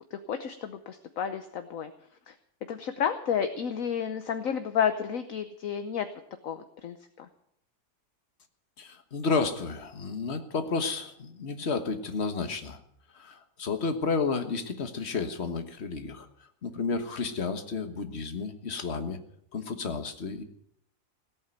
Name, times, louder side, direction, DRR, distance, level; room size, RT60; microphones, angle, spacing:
voice 1, 0.1-1.9 2.3-2.4 2.7-6.1 6.4-7.3, left 8 dB, 60° left, 8 dB, 1.2 m, -31 dB
voice 2, 8.8-12.8 13.1-16.3 16.6-19.2 19.5-20.4, left 4 dB, 45° left, 7 dB, 1.6 m, -31 dB
17.5 x 8.7 x 9.1 m, 0.72 s
omnidirectional pair, 1.7 m